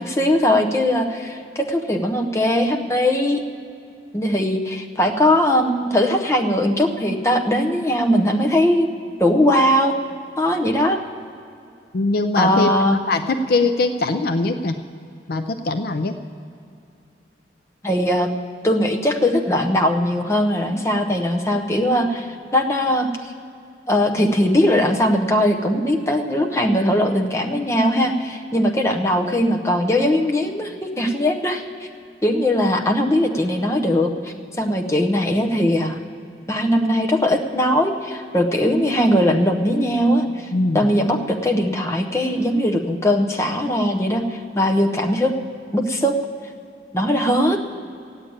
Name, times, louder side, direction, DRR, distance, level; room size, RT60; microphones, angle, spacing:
voice 1, 0.0-3.4 4.1-8.9 9.2-10.0 10.4-11.0 12.4-13.0 17.8-18.3 18.6-23.1 23.9-31.6 32.2-36.0 36.5-40.5 40.7-45.3 45.7-46.2 46.9-47.6, left 1 dB, 15° left, 3 dB, 0.8 m, -20 dB
voice 2, 11.9-12.7 13.1-13.2 13.5-14.7 15.3-16.1 40.5-40.9, left 3 dB, 55° left, 8 dB, 0.5 m, -21 dB
14.0 x 8.7 x 8.7 m, 2.6 s
head